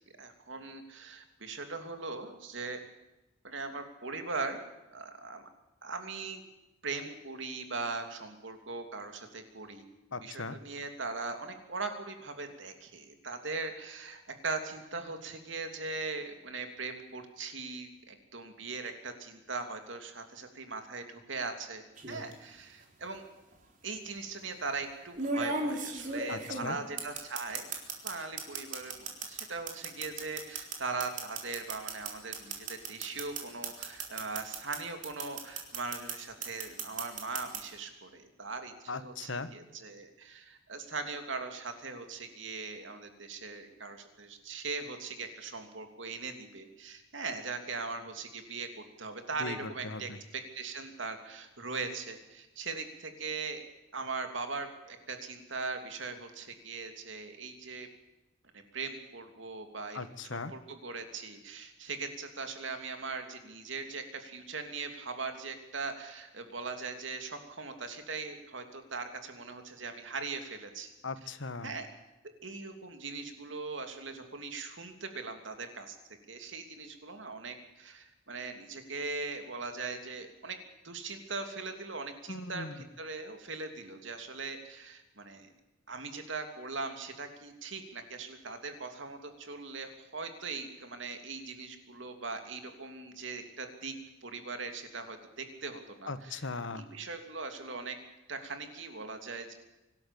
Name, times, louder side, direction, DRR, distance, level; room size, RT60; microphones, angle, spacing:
voice 1, 0.2-2.8 3.4-4.6 4.9-5.5 5.8-6.4 6.8-9.8 10.2-23.2 23.8-27.7 28.0-48.7 49.0-53.6 53.9-57.9 58.5-60.0 60.3-70.9 71.6-71.9 72.4-76.0 76.3-80.6 80.8-85.5 85.9-94.0 94.2-96.4 96.7-98.0 98.3-99.5, right 4 dB, 70° right, 6 dB, 3.0 m, -40 dB
voice 2, 10.1-10.6 26.3-26.8 38.9-39.5 49.3-50.2 59.9-60.5 71.0-71.7 82.3-82.9 96.1-96.9, left 3 dB, 70° left, 13 dB, 1.3 m, -39 dB
sound 1, 22.0-22.3 23.5-23.6 25.2-28.1 28.4-34.8 35.0-36.1 36.4-37.6, right 3 dB, 40° right, 3.9 m, -35 dB
25.0 x 12.5 x 8.5 m, 1.0 s
head